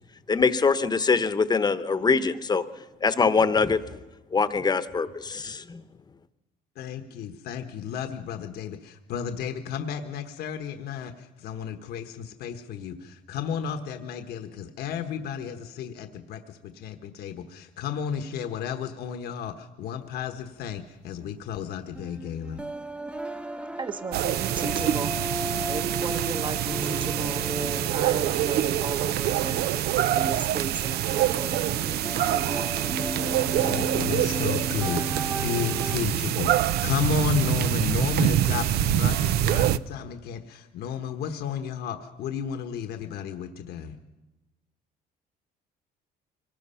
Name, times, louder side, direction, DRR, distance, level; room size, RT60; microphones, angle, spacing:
voice 1, 0.3-2.7 3.0-3.8 4.3-5.8, left 4 dB, 25° left, 12 dB, 1.0 m, -23 dB
voice 2, 6.8-22.6 33.6-44.0, left 7 dB, 70° left, 7 dB, 1.3 m, -32 dB
sound 1, 21.9-36.0, right 1 dB, 5° right, 0.7 m, -35 dB
voice 3, 23.8-25.2 25.7-29.6 30.1-31.6 32.3-32.7 33.0-33.4, right 4 dB, 30° right, 11 dB, 1.1 m, -35 dB
sound 2, 24.1-39.8, right 12 dB, 70° right, 0.6 m, -25 dB
24.5 x 19.0 x 5.7 m, 1.1 s
cardioid pair, 110°, 17 cm